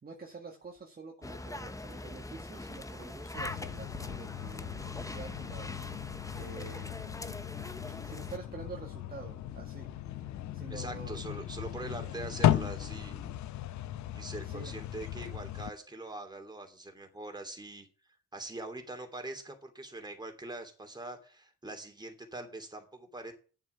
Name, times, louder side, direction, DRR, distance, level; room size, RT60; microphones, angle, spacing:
voice 1, 0.0-6.1 6.3-7.0 7.8-9.9 10.5-11.2 12.0-12.1 14.4-14.7, right 4 dB, 30° right, 1 dB, 1.7 m, -47 dB
sound 1, 1.2-8.4, left 2 dB, 10° left, 0.9 m, -42 dB
sound 2, 3.3-15.7, left 12 dB, 70° left, 0.7 m, -36 dB
sound 3, 3.9-13.4, left 2 dB, 25° left, 2.5 m, -56 dB
voice 2, 10.7-13.2 14.1-17.9 18.3-23.3, right 2 dB, 15° right, 4 dB, 2.9 m, -43 dB
9.1 x 7.4 x 7.0 m, 0.38 s
cardioid pair, 90°, 30 cm